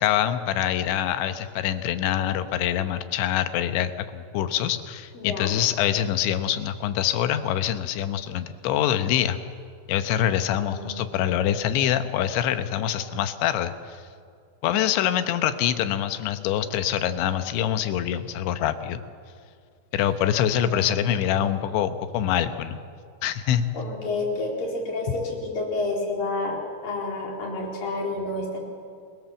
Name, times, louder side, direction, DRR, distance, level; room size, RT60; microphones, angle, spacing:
voice 1, 0.0-9.4 9.9-14.0 14.6-19.0 19.9-22.8 23.2-23.6, left 10 dB, 90° left, 10 dB, 3.4 m, -25 dB
voice 2, 5.1-5.5 10.6-11.1 20.7-21.4 23.7-28.6, left 2 dB, 50° left, -1 dB, 5.6 m, -30 dB
29.5 x 22.0 x 7.2 m, 2.2 s
omnidirectional pair, 5.1 m